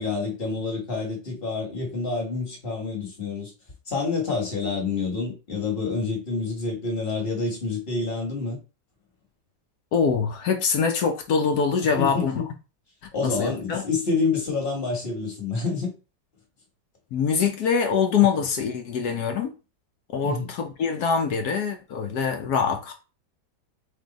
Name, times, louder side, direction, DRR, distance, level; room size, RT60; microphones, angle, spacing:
voice 1, 0.0-3.5 3.9-8.6 11.9-12.4 13.1-15.9 20.2-20.5, left 4 dB, 35° left, 1.6 m, -28 dB
voice 2, 9.9-12.4 13.2-13.9 17.1-19.5 20.1-22.9, left 6 dB, 70° left, 1.2 m, -24 dB
3.7 x 3.6 x 3.9 m
omnidirectional pair, 1.8 m